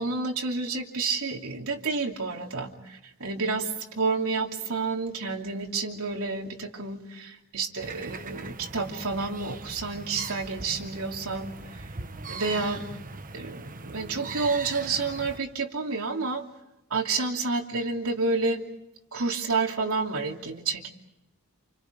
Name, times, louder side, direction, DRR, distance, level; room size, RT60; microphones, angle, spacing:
voice 1, 0.0-11.9 12.3-12.9 13.3-16.5 16.9-18.6 19.1-20.9, right 4 dB, 75° right, 2 dB, 2.9 m, -30 dB
sound 1, 7.8-15.4, right 4 dB, 40° right, 1.2 m, -40 dB
29.0 x 29.0 x 5.3 m, 0.89 s
head